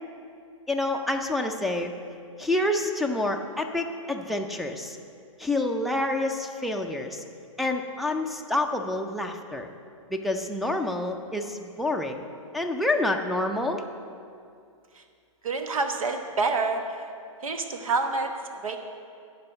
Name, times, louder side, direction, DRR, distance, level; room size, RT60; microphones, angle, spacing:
voice 1, 0.7-1.9 2.4-5.0 5.4-7.2 7.6-9.7 10.1-12.2 12.5-13.8, left 2 dB, ahead, 1 dB, 0.4 m, -28 dB
voice 2, 15.4-17.0 17.4-18.8, right 3 dB, 80° right, 6 dB, 1.3 m, -28 dB
11.5 x 5.3 x 7.8 m, 2.4 s
hypercardioid pair, 140°, 17 cm